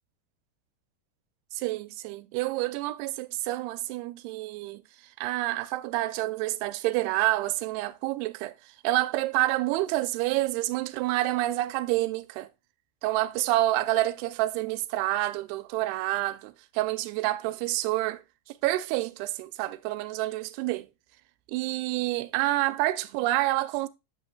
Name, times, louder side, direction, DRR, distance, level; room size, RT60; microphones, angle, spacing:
voice 1, 1.5-4.8 5.2-12.5 13.0-18.2 18.6-20.9 21.5-23.9, right 17 dB, 90° right, 2.6 m, -28 dB
8.5 x 8.1 x 2.2 m
omnidirectional pair, 4.5 m